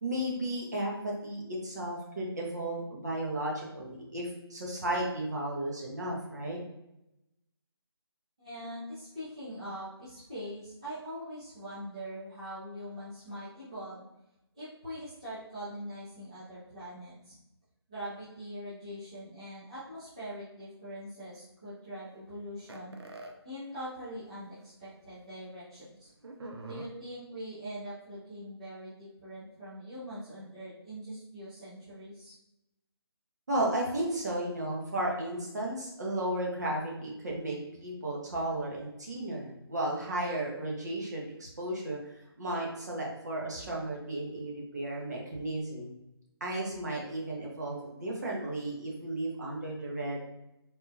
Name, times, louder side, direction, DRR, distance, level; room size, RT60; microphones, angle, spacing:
voice 1, 0.0-6.6 33.5-42.0 42.4-45.9 46.4-50.3, right 1 dB, 40° right, -3 dB, 0.8 m, -34 dB
voice 2, 8.4-14.0 14.5-17.3 17.9-23.0 23.4-26.1 26.7-32.3, equal, 15° right, -14 dB, 0.4 m, -42 dB
sound 1, 22.7-23.3 24.3-24.4 24.6-24.7 26.2-26.9, right 2 dB, 70° right, 0.5 m, -43 dB
3.5 x 2.2 x 2.7 m, 0.89 s
hypercardioid pair, 175°, 14 cm